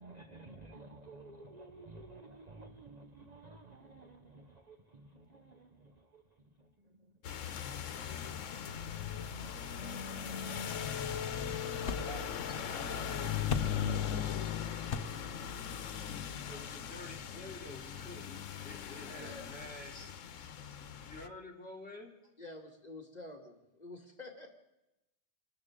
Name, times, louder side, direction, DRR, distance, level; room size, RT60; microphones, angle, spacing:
voice 1, 0.0-6.2 6.6-6.7 11.4-14.1, right 2 dB, 40° right, 0.8 m, -53 dB
sound 1, 7.2-21.3, left 8 dB, 90° left, 1.2 m, -39 dB
sound 2, 10.2-17.3, left 5 dB, 50° left, 0.9 m, -45 dB
voice 2, 11.8-13.3 16.0-20.1 20.7-22.2, left 1 dB, 5° left, 3.1 m, -51 dB
voice 3, 19.2-19.5 22.4-24.6, left 2 dB, 35° left, 2.1 m, -48 dB
28.5 x 13.0 x 3.7 m
omnidirectional pair, 1.3 m